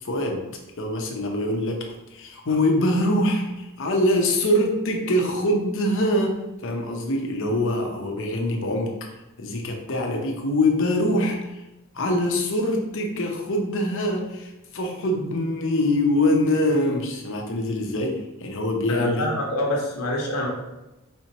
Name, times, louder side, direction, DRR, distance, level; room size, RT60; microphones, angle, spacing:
voice 1, 0.0-0.4 0.8-8.9 9.4-11.5 11.9-19.3, left 1 dB, 60° left, 1 dB, 0.8 m, -24 dB
voice 2, 18.9-20.5, left 1 dB, 80° left, -2 dB, 1.2 m, -26 dB
4.4 x 4.1 x 2.9 m, 0.98 s
head